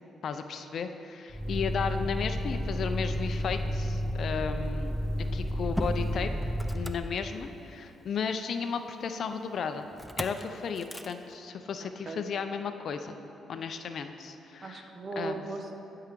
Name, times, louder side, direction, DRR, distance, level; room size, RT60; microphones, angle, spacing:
voice 1, 0.2-5.0 5.3-6.3 6.7-9.9 10.2-13.2 13.5-14.8 15.2-15.4, left 6 dB, 60° left, 8 dB, 0.4 m, -34 dB
Motor vehicle (road), 1.3-7.7 10.0-10.4 10.8-11.1, equal, ahead, 0.4 m, -32 dB
voice 2, 11.8-12.3 14.6-15.8, right 3 dB, 40° right, 4 dB, 0.9 m, -38 dB
11.5 x 4.7 x 5.1 m, 2.9 s
cardioid pair, 90°, 0 cm